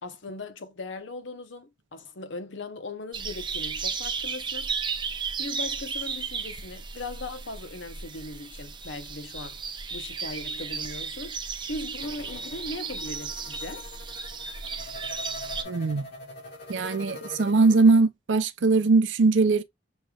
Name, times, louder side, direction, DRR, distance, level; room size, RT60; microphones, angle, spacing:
voice 1, 0.0-4.7 5.4-9.6 9.9-11.4 11.7-13.8, left 2 dB, 75° left, 0.8 m, -38 dB
sound 1, 3.1-15.6, right 5 dB, 25° right, 0.6 m, -34 dB
sound 2, 12.0-18.0, left 2 dB, 60° left, 2.3 m, -43 dB
voice 2, 15.7-16.0 16.7-19.6, right 3 dB, 75° right, 0.6 m, -21 dB
6.4 x 3.1 x 2.4 m
head